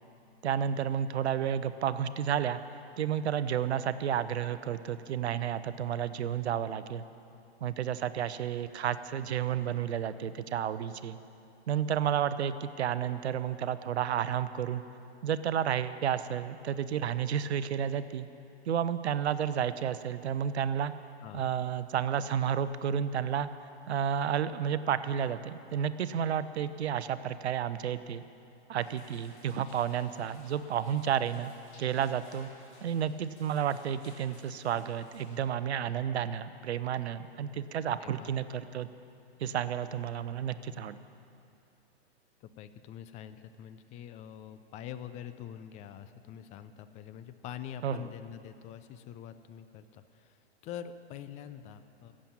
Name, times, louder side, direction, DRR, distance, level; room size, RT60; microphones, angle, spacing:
voice 1, 0.4-2.6 3.0-7.0 7.6-11.2 11.7-14.8 15.2-18.3 18.7-20.9 21.3-23.5 23.9-28.2 28.7-31.5 31.8-32.5 32.8-38.9 39.4-41.0 47.8-48.1, right 9 dB, 75° right, 13 dB, 0.7 m, -31 dB
voice 2, 21.2-21.5 38.0-38.3 42.4-52.2, left 9 dB, 20° left, 11 dB, 0.5 m, -45 dB
sound 1, 28.8-35.4, left 2 dB, 80° left, 2.9 m, -58 dB
15.0 x 7.5 x 8.7 m, 2.7 s
hypercardioid pair, 125°, 33 cm